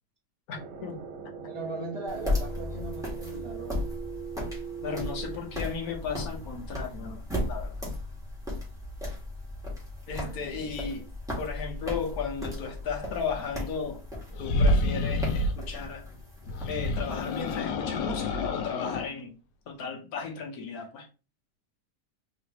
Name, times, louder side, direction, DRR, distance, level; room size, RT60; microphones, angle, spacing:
voice 1, 0.5-1.0 4.8-7.7 10.1-11.1 11.4-14.0 14.4-16.1 16.7-19.3 19.7-21.1, left 5 dB, 65° left, 1.5 m, -35 dB
sound 1, 0.5-5.4, right 7 dB, 65° right, 0.6 m, -40 dB
voice 2, 1.4-3.8 10.2-10.7, right 2 dB, 25° right, 0.8 m, -39 dB
sound 2, 2.1-17.5, left 1 dB, ahead, 1.4 m, -36 dB
sound 3, 14.3-15.6 16.5-19.1, left 1 dB, 90° left, 1.3 m, -28 dB
3.8 x 3.2 x 2.9 m
omnidirectional pair, 1.8 m